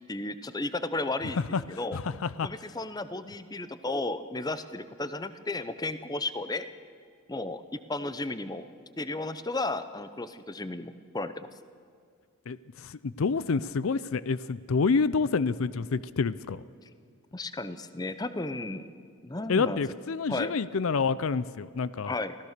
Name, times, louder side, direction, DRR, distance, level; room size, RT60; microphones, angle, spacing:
voice 1, 0.1-1.4 1.7-2.0 2.4-6.7 7.3-8.6 9.0-11.5 17.3-18.9 19.2-19.8 20.3-20.5 22.0-22.4, left 2 dB, 15° left, 12 dB, 0.7 m, -34 dB
voice 2, 1.9-2.5 12.5-16.6 19.5-22.2, left 4 dB, 65° left, 17 dB, 0.5 m, -28 dB
24.0 x 16.5 x 6.6 m, 2.2 s
head